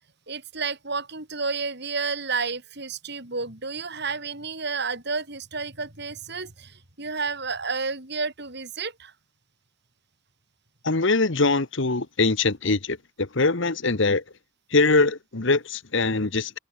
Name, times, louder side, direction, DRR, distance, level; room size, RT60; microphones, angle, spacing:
voice 1, 0.3-9.1, right 4 dB, 50° right, 4.0 m, -31 dB
voice 2, 10.8-14.2 14.7-16.6, left 3 dB, 60° left, 1.3 m, -22 dB
head